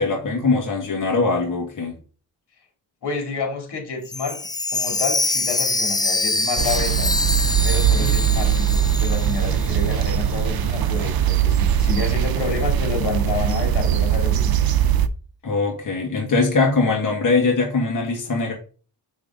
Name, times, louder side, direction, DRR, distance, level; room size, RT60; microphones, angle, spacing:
voice 1, 0.0-2.0 8.0-8.2 15.4-18.5, left 3 dB, 50° left, 1.9 m, -21 dB
voice 2, 3.0-7.1 7.6-14.6, left 4 dB, 80° left, 2.9 m, -29 dB
Chime, 4.0-10.0 10.3-10.4 11.0-11.1, left 2 dB, 10° left, 0.3 m, -25 dB
sound 1, 6.6-15.1, right 9 dB, 65° right, 0.7 m, -20 dB
7.0 x 6.3 x 3.8 m
wide cardioid pair, 110°, 40 cm